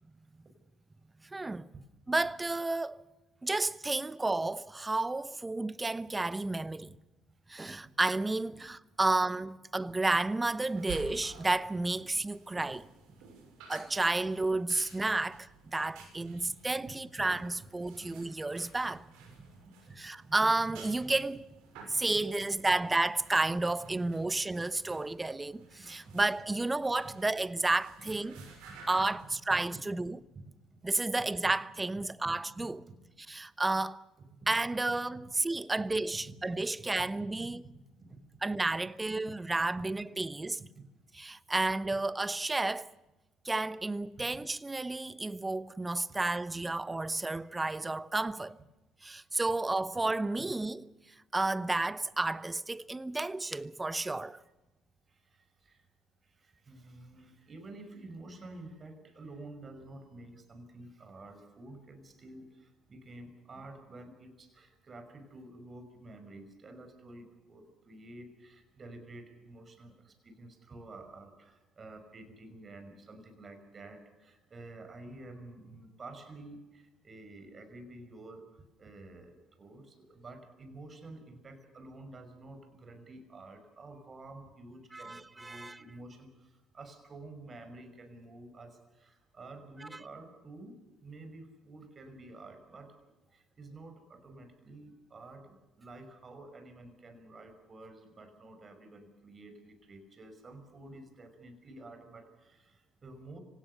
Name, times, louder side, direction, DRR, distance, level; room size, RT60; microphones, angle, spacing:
voice 1, 1.3-1.7 2.1-3.0 3.4-6.9 7.5-12.9 13.7-15.5 15.7-19.0 20.0-21.5 21.9-28.4 28.9-30.2 30.8-32.8 33.3-34.1 34.5-37.6 38.4-40.6 41.2-42.9 43.4-48.5 49.0-50.8 51.3-54.4 84.9-85.8, right 2 dB, 20° right, 1.0 m, -31 dB
sound 1, 10.1-29.3, right 5 dB, 75° right, 6.2 m, -53 dB
voice 2, 28.4-28.8 29.1-29.2 29.5-29.6 30.0-30.1 30.3-30.9 32.2-32.4 32.9-33.0 34.2-34.5 36.8-38.4 39.3-39.4 40.8-40.9 46.1-46.2 53.4-53.7 54.4-54.5 55.1-55.9 56.2-92.9 93.3-103.4, right 2 dB, 40° right, 5.8 m, -50 dB
25.5 x 18.0 x 6.8 m
hypercardioid pair, 55°, 0 cm